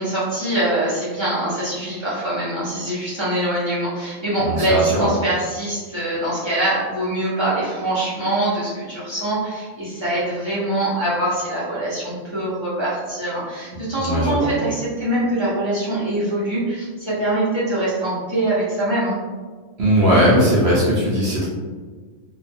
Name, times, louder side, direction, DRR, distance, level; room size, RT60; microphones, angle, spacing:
voice 1, 0.0-19.2, right 1 dB, 30° right, -11 dB, 0.6 m, -23 dB
voice 2, 4.4-5.1 14.0-14.5 19.8-21.5, equal, 60° right, -6 dB, 0.8 m, -18 dB
2.4 x 2.2 x 2.6 m, 1.4 s
omnidirectional pair, 1.4 m